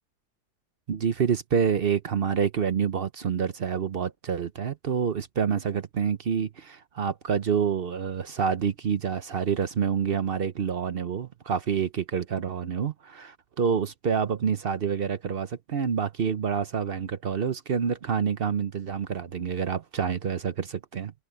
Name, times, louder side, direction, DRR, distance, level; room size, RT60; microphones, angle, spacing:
voice 1, 0.9-21.1, right 7 dB, 50° right, 0.7 m, -27 dB
omnidirectional pair, 1.7 m